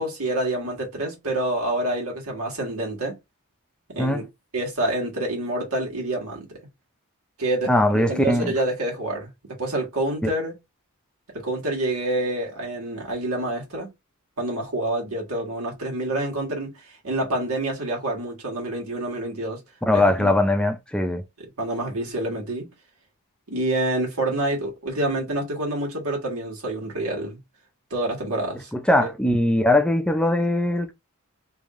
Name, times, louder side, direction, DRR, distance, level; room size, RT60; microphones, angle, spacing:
voice 1, 0.0-3.2 3.9-4.2 4.5-6.5 7.4-9.3 9.6-10.5 11.3-13.9 14.4-19.6 19.9-20.3 21.4-22.7 23.5-27.4 27.9-28.7, right 1 dB, 90° right, 1.7 m, -27 dB
voice 2, 7.7-8.5 10.2-10.3 19.9-21.2 28.7-30.9, left 1 dB, 5° left, 0.5 m, -20 dB
3.5 x 2.7 x 3.6 m
head